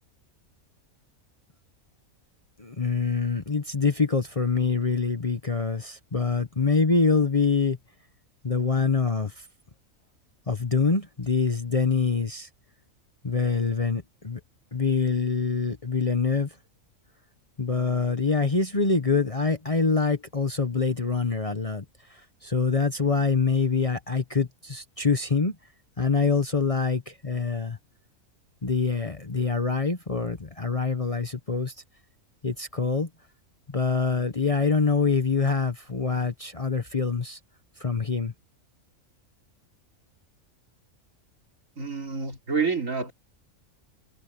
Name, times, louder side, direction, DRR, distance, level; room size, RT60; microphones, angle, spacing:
voice 1, 2.6-7.8 8.4-9.5 10.5-12.5 13.2-14.4 14.7-16.5 17.6-21.8 22.1-25.6 26.0-27.8 28.6-31.7 32.4-33.1 33.7-37.4 37.8-38.3, left 4 dB, 30° left, 1.0 m, -25 dB
voice 2, 41.8-43.1, right 5 dB, 70° right, 3.6 m, -28 dB
omnidirectional pair, 1.4 m